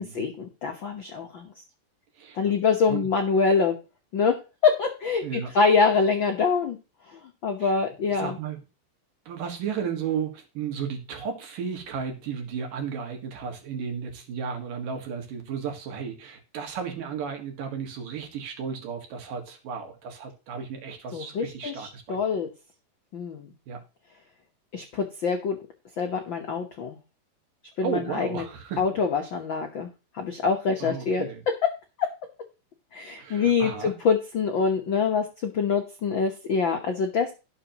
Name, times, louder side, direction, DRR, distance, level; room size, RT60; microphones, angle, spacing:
voice 1, 0.0-1.5 2.3-3.8 4.1-4.4 4.6-6.8 7.1-8.4 21.1-22.5 23.1-23.5 24.7-25.6 26.0-27.0 27.8-28.4 28.8-31.3 32.0-32.1 32.9-37.3, left 5 dB, 80° left, 3 dB, 1.0 m, -25 dB
voice 2, 5.2-5.5 7.6-7.8 8.1-8.6 9.3-22.2 23.7-23.8 27.8-28.9 30.8-31.4 33.2-33.9, right 6 dB, 70° right, 3 dB, 3.4 m, -34 dB
17.5 x 6.7 x 3.0 m, 0.30 s
omnidirectional pair, 4.0 m